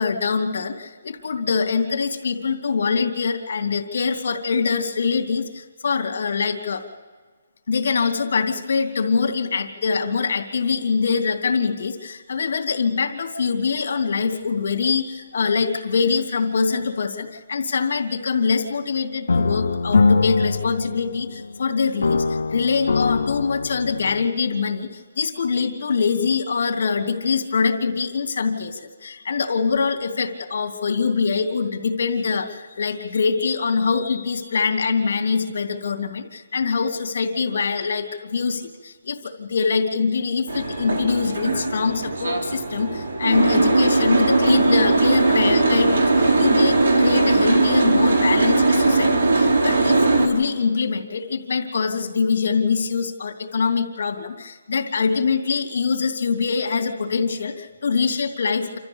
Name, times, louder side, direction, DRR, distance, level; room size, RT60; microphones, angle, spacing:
voice 1, 0.0-6.8 7.7-58.8, left 5 dB, 55° left, 2 dB, 3.0 m, -24 dB
sound 1, 19.3-21.6 22.0-24.3, left 4 dB, 85° left, 0.6 m, -22 dB
Boat Water vehicle, 40.5-50.3, right 3 dB, 85° right, 3.5 m, -19 dB
29.0 x 14.0 x 7.1 m, 1.5 s
hypercardioid pair, 175°, 0 cm